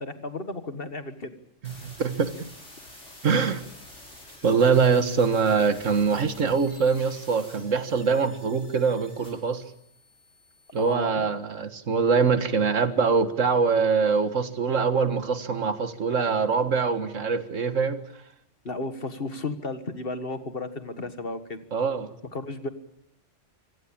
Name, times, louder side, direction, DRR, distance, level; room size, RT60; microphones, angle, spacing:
voice 1, 0.0-1.3 10.8-11.3 18.6-21.6 22.3-22.7, left 2 dB, 50° left, 10 dB, 1.8 m, -34 dB
sound 1, 1.6-10.9, left 1 dB, 70° left, 6.9 m, -49 dB
voice 2, 1.6-2.5 3.2-3.6 4.4-9.6 10.7-18.0 21.7-22.1, right 5 dB, 80° right, 11 dB, 1.9 m, -23 dB
25.5 x 17.5 x 8.8 m, 0.74 s
omnidirectional pair, 1.3 m